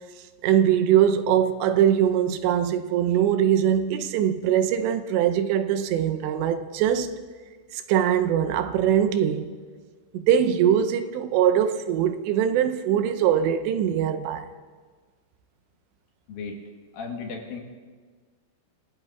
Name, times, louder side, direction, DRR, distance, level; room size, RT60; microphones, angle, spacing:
voice 1, 0.4-7.2 7.7-9.5 10.1-14.5, right 9 dB, 85° right, 2.9 m, -22 dB
voice 2, 16.9-17.6, left 4 dB, 65° left, 2.7 m, -35 dB
27.0 x 16.5 x 2.4 m
omnidirectional pair, 5.0 m